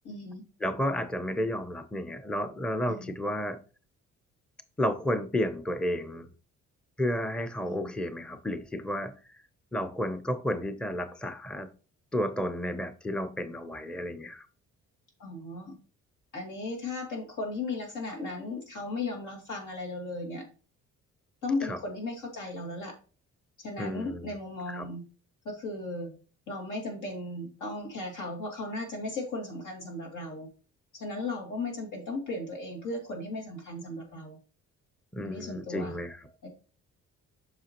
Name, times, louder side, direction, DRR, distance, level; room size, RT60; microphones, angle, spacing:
voice 1, 0.0-0.4 2.9-3.2 7.6-7.9 15.2-15.8 16.3-20.5 21.4-23.0 23.6-25.0 25.4-26.1 26.5-30.5 30.9-34.4 35.2-36.0 36.4-36.5, left 2 dB, 80° left, 2.6 m, -36 dB
voice 2, 0.6-3.6 4.8-6.3 7.0-9.1 9.7-11.7 12.1-14.5 21.7-21.8 23.8-24.3 24.7-24.9 35.1-36.2, equal, 5° left, 0.6 m, -32 dB
7.6 x 5.7 x 2.9 m
cardioid pair, 90°, 30 cm